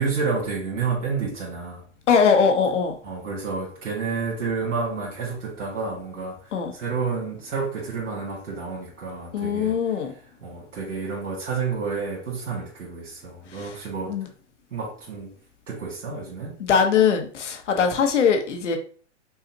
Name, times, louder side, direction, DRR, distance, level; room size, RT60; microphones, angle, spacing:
voice 1, 0.0-1.8 3.0-9.8 10.4-14.2 14.7-15.3 15.7-16.5, right 5 dB, 80° right, 1.7 m, -30 dB
voice 2, 2.1-2.9 6.5-6.7 9.3-10.1 13.5-13.8 14.1-14.3 16.6-18.8, left 6 dB, 80° left, 1.0 m, -21 dB
5.6 x 2.4 x 2.8 m
hypercardioid pair, 110°, 36 cm